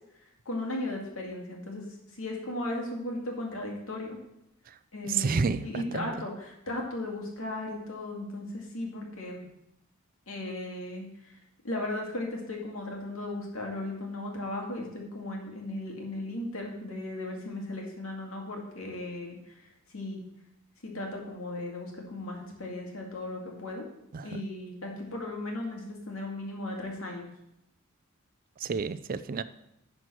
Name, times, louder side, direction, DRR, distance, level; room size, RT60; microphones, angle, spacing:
voice 1, 0.1-4.2 4.9-9.4 10.3-11.4 11.6-20.2 20.8-23.8 24.2-27.3, left 1 dB, 80° left, 0 dB, 2.3 m, -36 dB
voice 2, 5.2-6.1 24.1-24.4 28.6-29.4, right 5 dB, 45° right, 14 dB, 0.4 m, -30 dB
10.5 x 4.4 x 6.2 m, 0.81 s
head